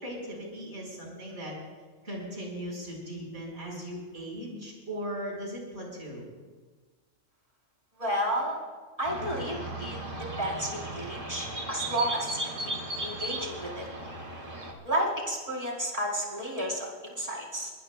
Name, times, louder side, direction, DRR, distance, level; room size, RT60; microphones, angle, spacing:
voice 1, 0.0-1.5 2.0-6.2, equal, 60° right, -2 dB, 5.1 m, -38 dB
voice 2, 8.0-8.6 9.0-10.0 10.4-12.7 13.0-13.9 14.8-17.7, right 1 dB, 30° right, -3 dB, 4.0 m, -32 dB
sound 1, 9.0-14.7, right 1 dB, 45° right, 2.2 m, -36 dB
22.5 x 20.0 x 2.3 m, 1.4 s
omnidirectional pair, 1.3 m